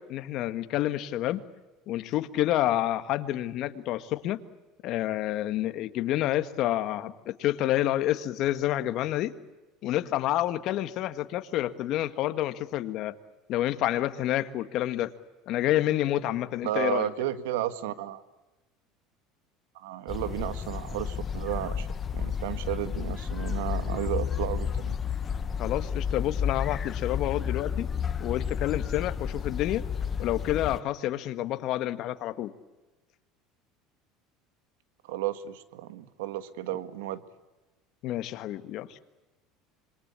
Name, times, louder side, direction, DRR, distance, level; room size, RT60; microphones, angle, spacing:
voice 1, 0.0-1.4 1.9-4.4 4.8-9.3 9.8-13.1 13.5-15.1 15.5-17.1 25.6-27.8 28.2-29.8 30.2-32.5 38.0-39.0, left 14 dB, 55° left, 10 dB, 1.7 m, -28 dB
voice 2, 16.6-18.2 19.7-21.9 22.1-25.0 35.1-37.2, right 13 dB, 90° right, 12 dB, 1.7 m, -33 dB
sound 1, 20.1-30.8, left 7 dB, 30° left, 1.2 m, -31 dB
26.5 x 23.0 x 8.4 m, 1.1 s
supercardioid pair, 120°, 0 cm